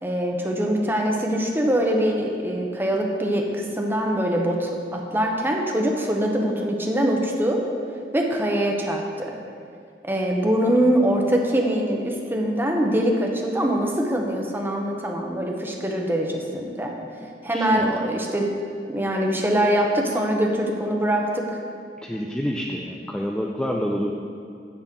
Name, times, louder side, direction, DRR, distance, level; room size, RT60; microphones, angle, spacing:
voice 1, 0.0-7.6 8.1-9.3 10.0-16.9 17.4-18.5 18.9-21.4, right 1 dB, 10° right, 0 dB, 1.0 m, -23 dB
voice 2, 17.2-17.9 22.0-24.1, equal, 5° left, -1 dB, 0.5 m, -28 dB
10.0 x 4.2 x 7.5 m, 2.4 s
head